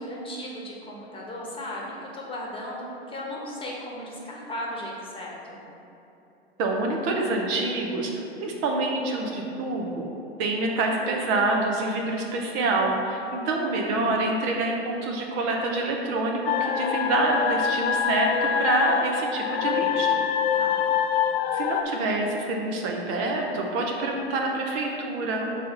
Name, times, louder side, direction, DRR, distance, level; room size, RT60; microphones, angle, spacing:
voice 1, 0.0-5.6 20.5-20.9, left 1 dB, 15° left, -3 dB, 1.1 m, -36 dB
voice 2, 6.6-10.1 10.4-20.2 21.5-25.6, right 2 dB, 45° right, 1 dB, 0.8 m, -27 dB
sound 1, 16.5-21.8, left 8 dB, 70° left, 0.5 m, -25 dB
6.4 x 4.1 x 3.9 m, 3.0 s
hypercardioid pair, 95°, 32 cm